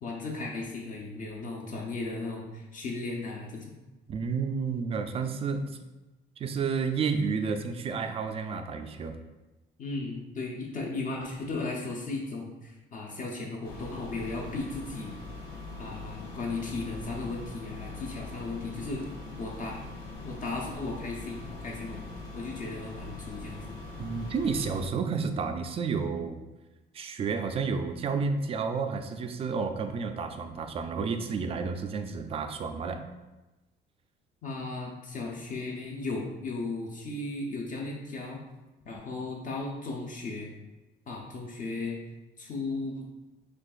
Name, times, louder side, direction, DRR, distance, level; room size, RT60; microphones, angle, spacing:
voice 1, 0.0-3.8 9.8-15.1 15.8-19.1 19.4-19.8 20.2-22.0 22.3-23.7 34.4-38.4 38.9-40.5 41.1-41.9 42.4-43.1, left 3 dB, 50° left, -2 dB, 0.7 m, -36 dB
voice 2, 4.1-5.8 6.4-9.2 24.0-26.4 26.9-33.0, right 5 dB, 35° right, 7 dB, 0.3 m, -31 dB
sound 1, 13.6-24.9, left 3 dB, 85° left, 0.9 m, -42 dB
6.3 x 2.4 x 2.4 m, 1.1 s
cardioid pair, 135°, 18 cm